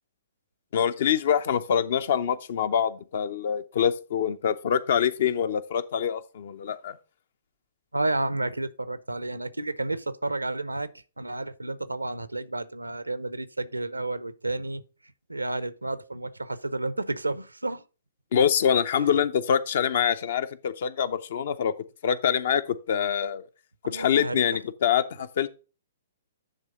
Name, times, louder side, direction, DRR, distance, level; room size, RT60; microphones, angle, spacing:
voice 1, 0.7-7.0 18.3-21.7 22.0-23.4 23.9-25.5, left 8 dB, 50° left, 0.6 m, -25 dB
voice 2, 7.9-10.9 11.2-14.8 15.3-17.8 18.9-19.2 23.8-24.4, right 2 dB, 80° right, 0.6 m, -31 dB
10.0 x 3.4 x 5.0 m
figure-of-eight pair, 120°, 0 cm